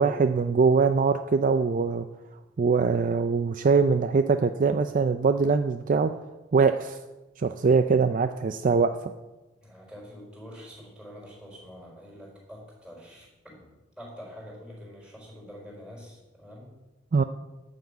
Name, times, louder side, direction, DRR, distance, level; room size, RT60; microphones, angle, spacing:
voice 1, 0.0-2.1 2.6-6.1 6.5-7.0 7.4-9.1 17.1-17.2, right 4 dB, 40° right, 9 dB, 0.4 m, -22 dB
voice 2, 9.6-13.7 14.0-16.7, equal, 5° right, -3 dB, 4.5 m, -46 dB
11.5 x 6.2 x 8.2 m, 1.1 s
head